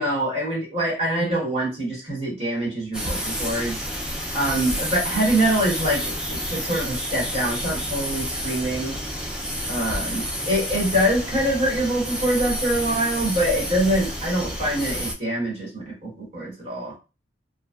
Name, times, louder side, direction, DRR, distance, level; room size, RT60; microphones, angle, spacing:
voice 1, 0.0-3.8 4.3-9.0 9.7-16.9, right 1 dB, 35° right, -5 dB, 1.1 m, -24 dB
sound 1, 2.9-15.1, equal, 5° right, 0.3 m, -29 dB
2.5 x 2.1 x 2.3 m, 0.30 s
head